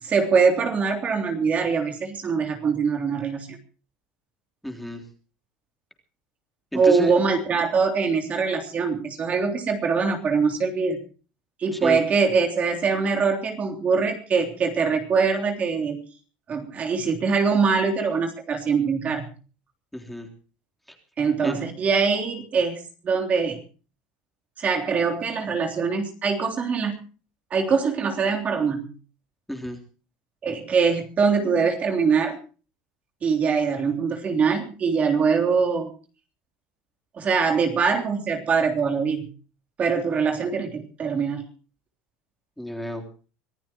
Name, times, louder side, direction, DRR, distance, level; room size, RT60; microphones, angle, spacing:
voice 1, 0.0-3.6 6.7-11.0 11.6-16.1 16.5-19.3 21.2-23.6 24.6-27.0 27.5-28.9 30.4-32.4 33.2-35.9 37.1-39.3 39.8-41.4, right 5 dB, 30° right, 3 dB, 3.4 m, -23 dB
voice 2, 4.6-5.0 6.7-7.1 11.7-12.0 19.9-20.3 21.4-21.6 29.5-29.8 42.6-43.0, left 1 dB, ahead, 3 dB, 3.6 m, -31 dB
25.5 x 15.5 x 3.0 m, 0.37 s
supercardioid pair, 115°, 4 cm